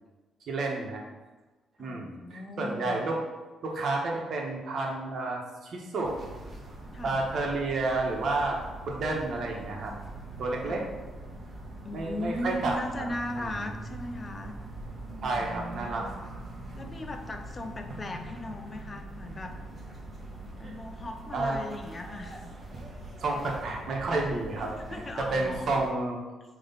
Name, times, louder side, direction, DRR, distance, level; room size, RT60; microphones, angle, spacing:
voice 1, 0.5-1.0 1.8-3.2 3.6-6.2 7.0-8.6 8.8-9.9 10.4-10.8 11.8-12.8 13.3-13.5 15.2-16.5 21.3-21.6 23.2-26.2, right 2 dB, 60° right, 0 dB, 1.4 m, -30 dB
voice 2, 1.8-3.0 6.9-7.2 10.6-10.9 11.8-14.6 15.1-16.2 16.7-19.6 20.6-22.5 24.6-25.7, left 1 dB, 30° left, 6 dB, 0.7 m, -38 dB
sound 1, 6.0-25.9, right 2 dB, 35° right, 1.3 m, -43 dB
7.6 x 3.3 x 4.1 m, 1.2 s
cardioid pair, 90°, 0 cm